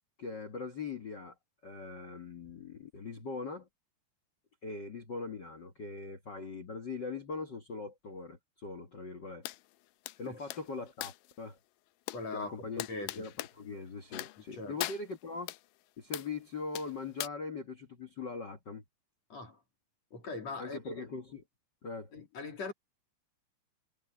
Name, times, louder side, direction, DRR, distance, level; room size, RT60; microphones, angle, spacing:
voice 1, 0.2-1.3 1.6-3.7 4.6-9.5 10.2-11.6 12.3-12.9 13.2-15.5 16.0-18.8 20.6-21.4 21.8-22.1, left 4 dB, 65° left, 1.0 m, -41 dB
sound 1, 9.4-9.6 10.1-11.3 12.1-12.2 12.8-13.5 14.1-14.5 14.8-15.6 16.1-16.3 16.7-17.3, left 18 dB, 85° left, 2.0 m, -40 dB
voice 2, 12.1-13.3 14.5-14.8 19.3-19.6 20.1-21.1 22.1-22.7, left 3 dB, 45° left, 3.7 m, -41 dB
omnidirectional pair, 4.4 m